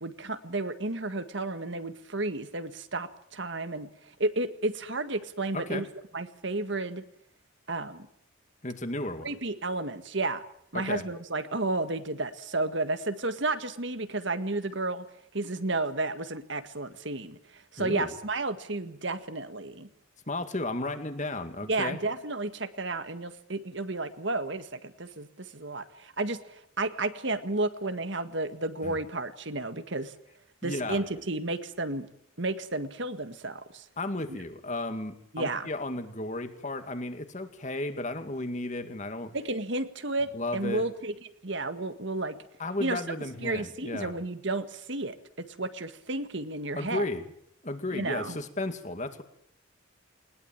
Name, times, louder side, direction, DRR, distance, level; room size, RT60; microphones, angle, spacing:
voice 1, 0.0-5.9 6.1-7.0 7.7-8.1 9.2-10.4 10.7-15.1 15.3-19.9 21.6-30.1 30.6-32.1 32.4-33.9 34.3-34.4 35.3-35.7 39.3-41.1 41.4-42.4 42.8-43.1 43.4-47.1 47.9-48.4, right 2 dB, 60° right, 10 dB, 1.7 m, -32 dB
voice 2, 5.5-5.8 8.6-9.3 10.7-11.0 17.8-18.1 20.3-22.0 28.8-29.0 30.6-31.0 34.0-39.3 40.3-40.8 42.6-44.1 46.8-47.2 47.6-49.2, left 2 dB, 35° left, 8 dB, 2.2 m, -34 dB
21.5 x 20.5 x 8.9 m, 0.71 s
head